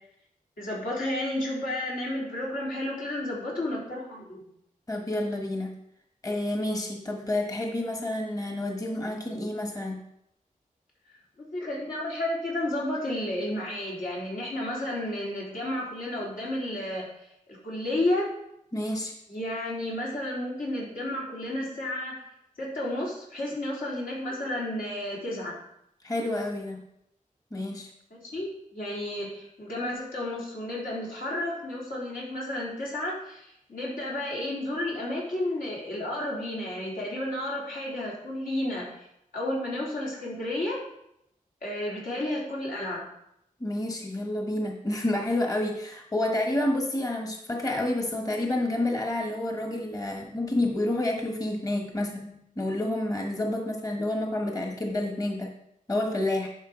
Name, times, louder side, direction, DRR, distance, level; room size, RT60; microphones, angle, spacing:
voice 1, 0.6-4.5 11.4-18.3 19.3-22.2 22.6-25.6 28.2-39.1 39.3-40.8 41.6-43.1, left 1 dB, 80° left, -6 dB, 3.7 m, -32 dB
voice 2, 4.9-5.8 6.2-10.0 18.7-19.1 26.0-26.8 27.5-27.9 43.6-55.5 55.9-56.5, left 1 dB, 25° left, 2 dB, 1.2 m, -29 dB
11.0 x 5.5 x 5.0 m, 0.79 s
wide cardioid pair, 110°, 14 cm